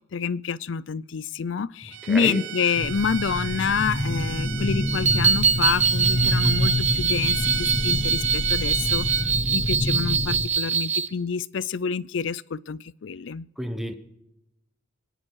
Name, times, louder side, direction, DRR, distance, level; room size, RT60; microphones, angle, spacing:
voice 1, 0.1-13.5, left 6 dB, 70° left, 0.5 m, -28 dB
Bowed string instrument, 1.9-9.3, right 12 dB, 70° right, 0.8 m, -36 dB
voice 2, 2.0-2.5 13.6-13.9, equal, ahead, 1.0 m, -30 dB
sound 1, 2.8-10.5, left 1 dB, 40° left, 1.2 m, -27 dB
sound 2, 4.9-11.1, right 6 dB, 35° right, 0.8 m, -24 dB
26.5 x 10.0 x 4.7 m
head